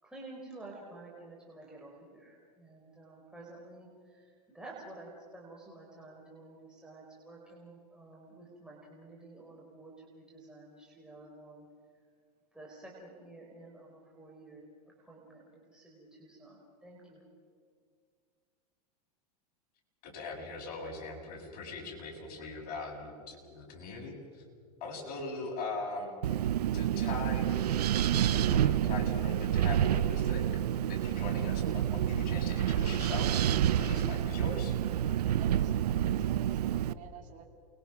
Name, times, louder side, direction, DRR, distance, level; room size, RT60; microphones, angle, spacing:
voice 1, 0.0-11.7 12.5-17.2, right 2 dB, 5° right, -3 dB, 4.7 m, -51 dB
voice 2, 20.0-24.1 24.8-26.1 26.7-27.6 28.3-30.5 30.9-33.3 33.7-34.7, left 3 dB, 45° left, 0 dB, 7.5 m, -40 dB
Wind, 26.2-36.9, right 10 dB, 85° right, 0.8 m, -28 dB
voice 3, 35.4-37.5, right 8 dB, 40° right, 2 dB, 2.8 m, -52 dB
29.0 x 22.0 x 6.1 m, 2.1 s
hypercardioid pair, 110°, 20 cm